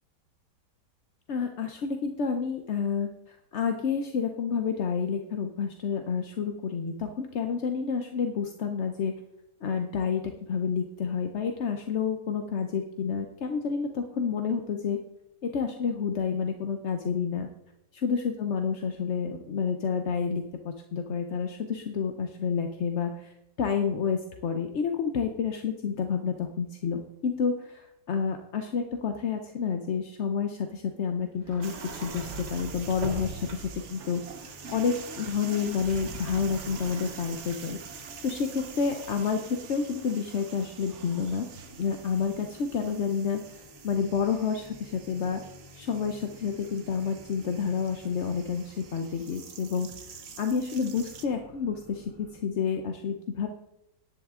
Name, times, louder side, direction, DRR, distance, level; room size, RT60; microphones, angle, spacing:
voice 1, 1.3-9.2 9.6-15.0 15.4-17.5 18.0-33.6 33.9-37.8 38.2-41.5 41.8-45.4 45.7-49.9 50.4-53.5, left 6 dB, 55° left, 5 dB, 0.9 m, -29 dB
Sliding door, 31.4-33.9 35.5-38.7, right 3 dB, 75° right, 2.6 m, -41 dB
sound 1, 31.6-51.3, right 6 dB, 50° right, 1.1 m, -46 dB
sound 2, 33.2-52.4, left 3 dB, 25° left, 3.0 m, -54 dB
10.5 x 10.5 x 3.7 m, 0.85 s
omnidirectional pair, 1.9 m